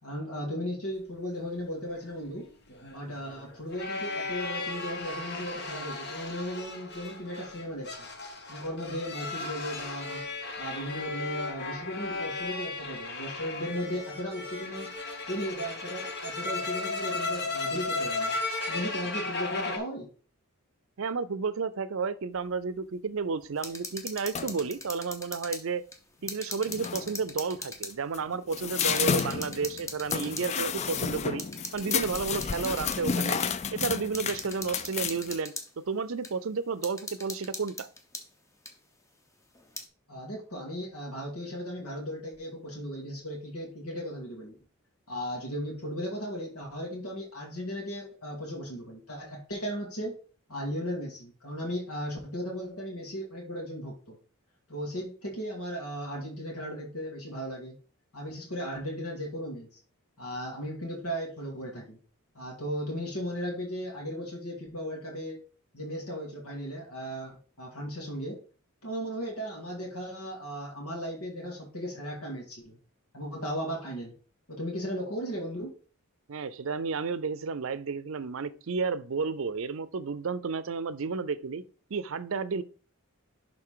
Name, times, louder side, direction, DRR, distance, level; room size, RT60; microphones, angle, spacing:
voice 1, 0.0-2.5 2.9-8.1 8.5-10.2 10.6-15.0 15.3-18.3 18.7-20.1 40.1-44.5 45.1-50.2 50.5-54.2 54.7-57.7 58.1-59.7 60.2-62.0 62.3-65.4 65.7-68.4 68.8-72.8 73.1-74.1 74.5-75.8, equal, 90° left, 2.2 m, -36 dB
sound 1, 2.0-19.8, left 3 dB, 50° left, 1.3 m, -35 dB
voice 2, 21.0-25.8 26.2-31.4 31.7-33.4 33.7-37.9 76.3-81.6 81.9-82.6, right 5 dB, 65° right, 0.5 m, -32 dB
sound 2, 23.6-25.7 25.9-28.0 28.5-28.6 29.0-30.6 31.4-33.0 33.4-33.5 34.1-35.7 36.2-36.3 36.8-38.3 38.7-38.8 39.5-39.9, left 2 dB, 15° left, 0.9 m, -40 dB
sound 3, 24.4-24.7 26.3-26.4 26.7-27.2 27.9-35.4, left 6 dB, 30° left, 0.3 m, -31 dB
11.0 x 3.8 x 3.8 m
head